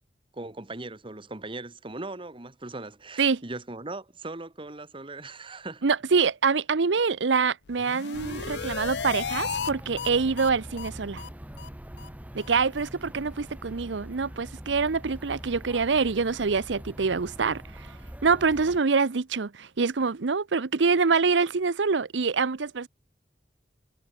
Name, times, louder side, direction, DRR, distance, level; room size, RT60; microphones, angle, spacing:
voice 1, 0.3-5.8, right 2 dB, 30° right, 1.5 m, -39 dB
voice 2, 5.8-11.2 12.3-17.9 18.2-22.9, right 4 dB, 90° right, 0.7 m, -25 dB
sound 1, 7.7-9.7 10.0-10.1 10.4-10.5 10.8-10.9 11.2-11.3 11.6-11.7 12.0-12.1 12.4-12.5 12.8-12.9, left 7 dB, 65° left, 0.5 m, -34 dB
sound 2, 8.1-18.8, equal, 10° right, 0.8 m, -43 dB
head